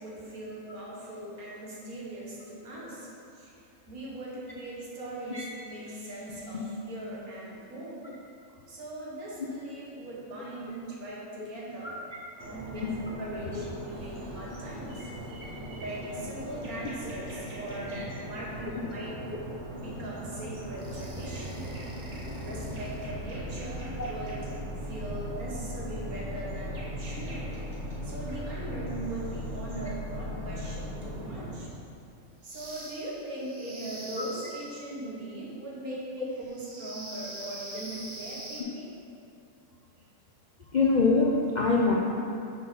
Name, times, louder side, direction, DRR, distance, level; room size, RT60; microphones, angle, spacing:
voice 1, 0.0-3.5 3.9-8.0 8.7-11.9 12.4-19.2 19.8-21.7 22.4-24.4 24.8-27.6 28.0-31.7 32.4-38.8, right 1 dB, 75° right, -5 dB, 1.9 m, -40 dB
sound 1, 12.4-31.6, right 1 dB, 50° right, 1.3 m, -40 dB
sound 2, 20.8-31.2 32.4-34.9 36.5-38.6, left 1 dB, 30° right, 0.9 m, -41 dB
voice 2, 40.7-41.9, left 3 dB, 55° left, -3 dB, 0.5 m, -23 dB
6.3 x 4.6 x 5.6 m, 2.5 s
omnidirectional pair, 1.5 m